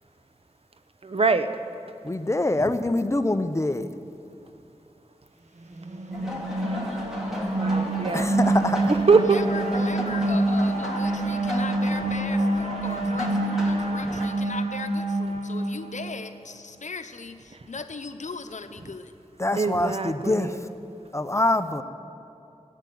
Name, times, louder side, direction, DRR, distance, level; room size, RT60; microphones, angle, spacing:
voice 1, 1.0-1.5 2.6-2.7 6.7-6.9 7.6-8.3 9.1-9.4 14.1-14.2 19.5-20.6, right 4 dB, 50° right, 9 dB, 0.8 m, -23 dB
voice 2, 2.0-3.9 8.1-8.8 19.4-20.6 21.1-21.8, left 2 dB, 25° left, 9 dB, 0.7 m, -25 dB
sound 1, 5.7-16.3, right 2 dB, 70° right, 1.2 m, -26 dB
sound 2, 6.1-14.3, equal, 5° right, 3.1 m, -34 dB
voice 3, 9.2-19.1, left 4 dB, 80° left, 8 dB, 0.8 m, -38 dB
15.5 x 8.3 x 9.4 m, 2.6 s
wide cardioid pair, 70°, 12 cm